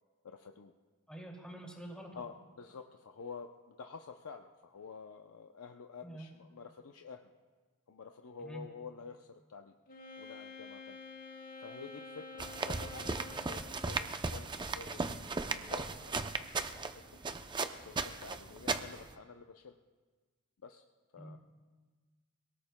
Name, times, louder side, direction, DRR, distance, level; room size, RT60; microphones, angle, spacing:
voice 1, 0.2-0.7 2.1-3.5 3.8-7.2 7.9-9.7 10.2-11.0 11.6-17.2 17.8-19.7 20.6-20.8 21.1-21.4, left 5 dB, 80° left, 4 dB, 0.6 m, -49 dB
voice 2, 1.1-2.2 6.0-6.3 8.4-8.7 21.2-21.4, right 1 dB, 5° left, -1 dB, 2.3 m, -46 dB
Wind instrument woodwind instrument, 9.9-13.9, left 3 dB, 40° left, 1.4 m, -49 dB
sound 1, 12.4-19.1, right 3 dB, 20° right, 0.5 m, -37 dB
29.0 x 18.5 x 2.2 m, 1.4 s
head